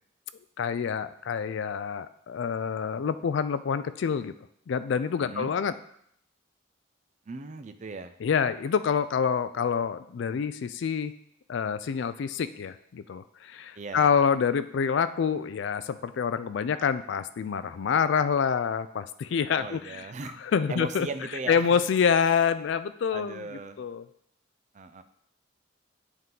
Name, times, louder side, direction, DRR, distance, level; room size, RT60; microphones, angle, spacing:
voice 1, 0.6-4.3 4.7-5.7 8.2-11.1 11.5-20.1 20.4-21.1 21.5-23.5 23.8-24.0, left 6 dB, 60° left, 13 dB, 0.3 m, -27 dB
voice 2, 5.2-5.5 7.3-8.1 13.7-14.1 19.5-20.4 20.7-21.7 23.1-23.8 24.7-25.0, right 3 dB, 35° right, 10 dB, 0.4 m, -38 dB
8.0 x 3.7 x 3.8 m, 0.71 s
head